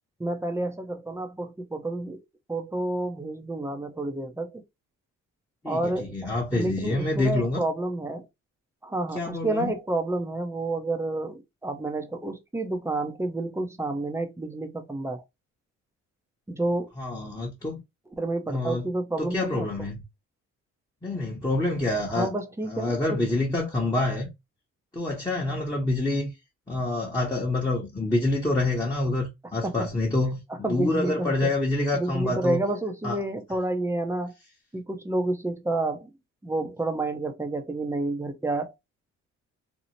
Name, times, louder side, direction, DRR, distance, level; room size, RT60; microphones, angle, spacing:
voice 1, 0.2-2.2 2.5-4.6 5.7-8.3 8.8-15.2 16.5-16.9 18.2-19.7 22.1-23.2 29.6-29.9 30.6-31.5 31.9-34.3 34.7-36.1 36.4-38.7, right 2 dB, 10° right, 0.5 m, -29 dB
voice 2, 5.6-7.6 9.1-9.7 17.0-17.8 18.5-18.9 19.2-19.9 21.0-22.3 22.7-24.3 24.9-26.3 26.7-32.6 33.0-33.2, left 2 dB, 10° left, 0.9 m, -27 dB
2.7 x 2.0 x 2.9 m
cardioid pair, 90°, 30 cm